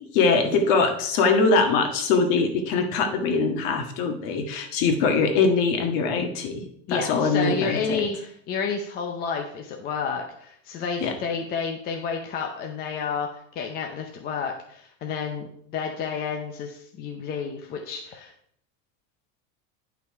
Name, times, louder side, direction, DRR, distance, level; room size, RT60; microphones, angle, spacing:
voice 1, 0.1-8.0 11.0-11.1, left 4 dB, 50° left, 4 dB, 1.7 m, -22 dB
voice 2, 6.9-18.3, left 6 dB, 25° left, 3 dB, 0.7 m, -30 dB
9.7 x 5.8 x 4.6 m, 0.67 s
supercardioid pair, 170°, 39 cm